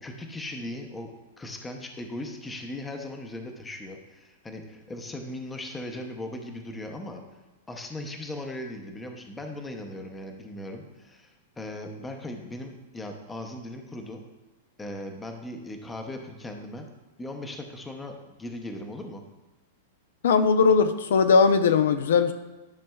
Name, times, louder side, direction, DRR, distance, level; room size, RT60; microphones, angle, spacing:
voice 1, 0.0-1.1 1.4-7.2 7.7-14.2 14.8-16.9 17.2-19.2, left 1 dB, 10° left, 4 dB, 0.7 m, -38 dB
voice 2, 20.2-22.3, left 5 dB, 80° left, 10 dB, 0.5 m, -19 dB
10.5 x 5.3 x 2.3 m, 1.1 s
supercardioid pair, 150°, 0 cm